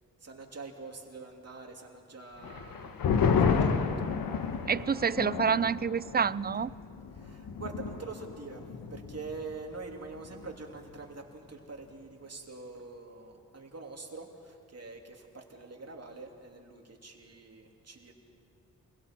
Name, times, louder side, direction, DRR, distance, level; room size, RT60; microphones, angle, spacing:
voice 1, 0.2-3.1 3.4-3.9 7.2-18.1, right 3 dB, 45° right, 2 dB, 3.1 m, -45 dB
sound 1, 2.4-9.4 9.7-9.8 10.1-10.6, left 5 dB, 80° left, 1.3 m, -31 dB
voice 2, 4.7-6.7, right 6 dB, 30° right, 20 dB, 0.4 m, -28 dB
27.5 x 21.5 x 4.6 m, 2.4 s
supercardioid pair, 45°, 34 cm